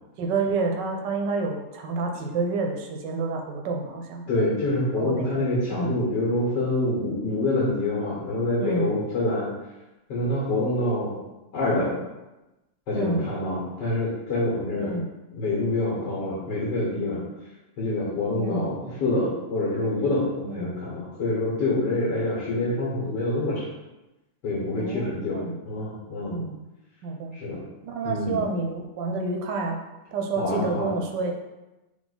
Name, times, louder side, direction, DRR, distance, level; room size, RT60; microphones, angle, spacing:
voice 1, 0.2-4.2 5.0-6.0 8.6-8.9 12.9-13.3 14.8-15.1 18.4-18.7 20.5-20.7 24.8-25.6 26.2-26.6 27.0-27.4 27.8-29.8 30.1-31.3, right 3 dB, 85° right, 2 dB, 1.3 m, -29 dB
voice 2, 4.3-9.5 10.1-11.1 11.5-12.0 12.9-14.9 15.3-17.2 17.8-23.7 24.4-26.4 27.3-27.6 28.0-28.4 30.4-30.9, left 2 dB, 85° left, -6 dB, 1.8 m, -26 dB
3.7 x 3.2 x 3.9 m, 1.0 s
omnidirectional pair, 1.8 m